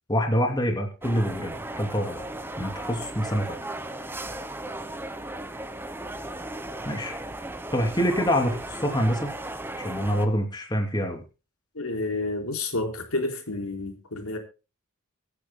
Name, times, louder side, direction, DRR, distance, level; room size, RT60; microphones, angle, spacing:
voice 1, 0.1-2.3 2.6-3.4 6.8-7.2 7.7-9.3 9.8-11.2, equal, 20° left, 2.9 m, -26 dB
sound 1, 1.0-10.3, right 1 dB, 10° right, 1.1 m, -36 dB
voice 2, 11.7-14.4, left 2 dB, 80° left, 4.2 m, -30 dB
25.5 x 10.5 x 2.2 m
head